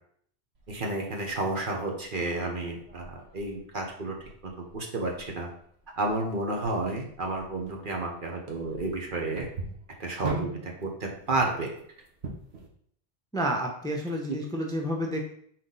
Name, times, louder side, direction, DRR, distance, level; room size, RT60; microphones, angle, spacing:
sound 1, 0.5-12.7, right 3 dB, 90° right, 1.3 m, -43 dB
voice 1, 0.7-4.1 4.4-5.5 6.0-9.5 10.0-11.7 14.3-14.4, right 2 dB, 55° right, 0 dB, 1.2 m, -31 dB
voice 2, 13.3-15.2, equal, 5° left, 1 dB, 0.7 m, -30 dB
5.8 x 4.3 x 4.0 m, 0.65 s
omnidirectional pair, 1.1 m